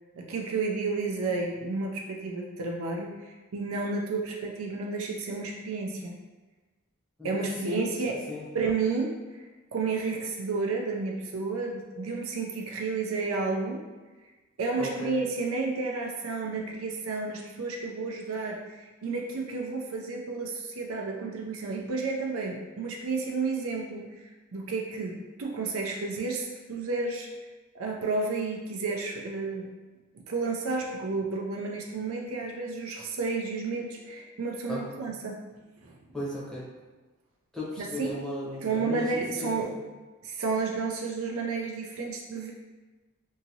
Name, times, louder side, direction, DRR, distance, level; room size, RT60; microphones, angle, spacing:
voice 1, 0.2-3.2 3.5-6.1 7.2-8.2 8.5-9.1 9.7-13.8 14.6-24.1 24.5-27.3 27.7-29.7 30.3-35.4 35.8-36.0 37.8-38.1 38.6-39.7 40.2-42.5, right 4 dB, 80° right, 0 dB, 0.5 m, -31 dB
voice 2, 14.8-15.2 34.7-35.0 36.1-36.7 37.5-39.6, left 1 dB, 5° left, -8 dB, 0.7 m, -36 dB
2.8 x 2.6 x 2.7 m, 1.2 s
head